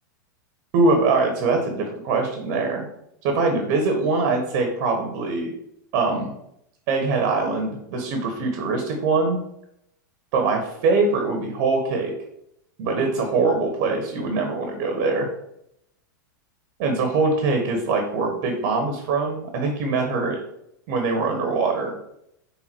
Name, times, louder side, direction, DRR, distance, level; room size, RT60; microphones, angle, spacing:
voice 1, 0.7-2.9 3.2-5.5 5.9-6.3 6.9-9.4 10.3-12.1 12.8-15.3 16.8-20.4 20.9-22.0, right 3 dB, 50° right, 3 dB, 1.4 m, -23 dB
5.7 x 3.8 x 4.6 m, 0.77 s
hypercardioid pair, 120°, 11 cm